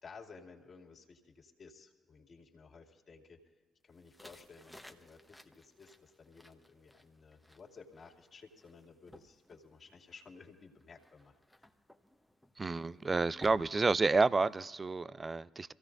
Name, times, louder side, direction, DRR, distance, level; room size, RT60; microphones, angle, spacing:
voice 1, 0.0-3.4 3.8-11.7, left 4 dB, 45° left, 2.6 m, -55 dB
sound 1, 3.9-14.6, left 1 dB, 5° left, 1.2 m, -59 dB
voice 2, 12.6-15.7, right 3 dB, 30° right, 0.4 m, -30 dB
26.0 x 16.0 x 2.6 m
hypercardioid pair, 40°, 0 cm